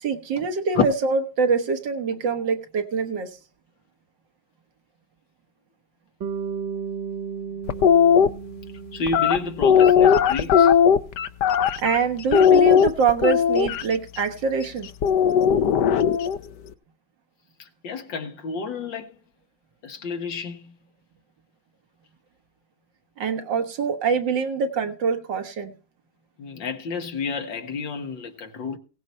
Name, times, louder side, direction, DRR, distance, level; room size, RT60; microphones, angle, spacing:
voice 1, 0.0-3.4 11.8-14.9 23.2-25.7, right 5 dB, 80° right, 2.0 m, -24 dB
Bass guitar, 6.2-10.5, right 6 dB, 50° right, 1.1 m, -34 dB
sound 1, 7.7-8.3 9.1-12.0 12.3-13.8 15.0-16.4, left 8 dB, 70° left, 1.3 m, -17 dB
voice 2, 8.9-10.7 17.8-19.1 19.8-20.7 26.4-28.8, left 4 dB, 85° left, 2.2 m, -30 dB
17.5 x 7.8 x 4.3 m
omnidirectional pair, 1.9 m